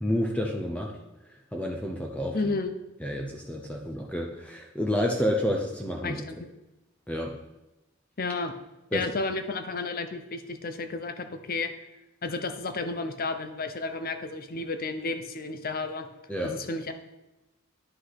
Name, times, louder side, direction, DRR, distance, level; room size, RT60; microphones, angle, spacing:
voice 1, 0.0-1.0 1.5-2.5 3.0-6.2 7.1-7.4 8.9-9.0 16.3-16.6, equal, 5° left, 1 dB, 0.7 m, -29 dB
voice 2, 2.3-2.7 6.0-6.4 8.2-8.5 8.9-11.7 12.2-16.1 16.4-16.9, left 3 dB, 45° left, 8 dB, 0.8 m, -32 dB
10.0 x 5.5 x 5.9 m, 1.0 s
head